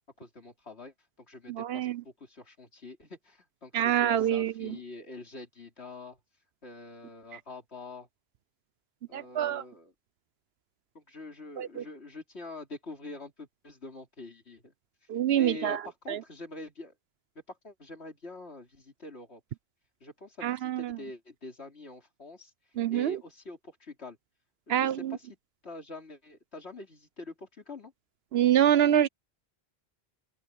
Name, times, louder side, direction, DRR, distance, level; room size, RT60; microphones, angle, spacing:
voice 1, 0.2-6.2 6.6-8.1 9.1-9.9 10.9-14.7 15.4-16.9 17.5-19.4 20.0-22.5 22.9-24.2 24.7-25.3 25.6-27.9, left 2 dB, 90° left, 3.7 m, -45 dB
voice 2, 1.5-2.0 3.7-4.8 7.3-7.4 9.1-9.6 11.6-11.8 15.1-15.8 16.1-16.2 20.4-21.0 22.8-23.2 24.7-25.2 28.3-29.1, right 10 dB, 75° right, 0.9 m, -26 dB
open air
omnidirectional pair, 1.1 m